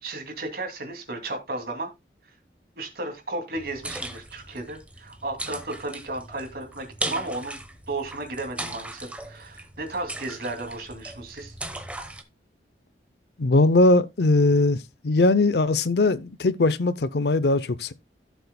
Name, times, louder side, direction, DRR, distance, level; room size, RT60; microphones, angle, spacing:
voice 1, 0.0-1.9 2.8-7.6 7.9-11.5, right 2 dB, 55° right, 2.5 m, -34 dB
sound 1, 3.5-12.2, right 2 dB, 10° right, 1.0 m, -38 dB
voice 2, 13.4-14.8 15.0-17.9, left 2 dB, 65° left, 0.6 m, -20 dB
16.0 x 6.9 x 2.2 m
head